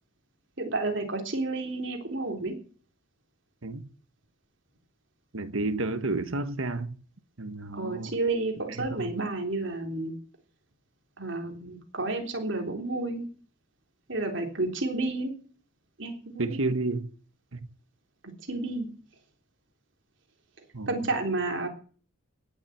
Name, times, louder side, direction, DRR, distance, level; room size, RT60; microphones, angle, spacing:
voice 1, 0.6-2.5 7.7-10.1 11.2-13.3 14.1-15.3 16.0-16.6 18.2-18.9 20.9-21.7, right 2 dB, 60° right, 3.6 m, -31 dB
voice 2, 5.3-6.9 7.4-8.1 8.8-9.1 16.4-17.1 17.5-17.6 20.7-21.1, right 2 dB, 75° right, 1.4 m, -31 dB
18.5 x 7.4 x 8.1 m
head